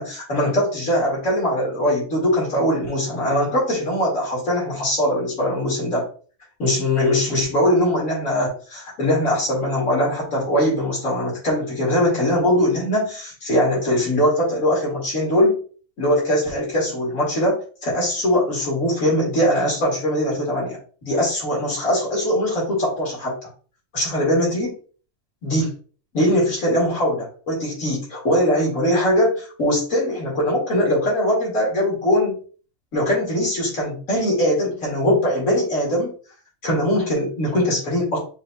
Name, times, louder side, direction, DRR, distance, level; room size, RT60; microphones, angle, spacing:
voice 1, 0.0-6.1 6.6-15.6 16.0-23.4 23.9-24.7 25.4-25.7 26.1-32.4 32.9-36.1 36.6-38.2, equal, 90° left, -5 dB, 2.5 m, -21 dB
7.2 x 2.8 x 2.3 m, 0.40 s
omnidirectional pair, 1.4 m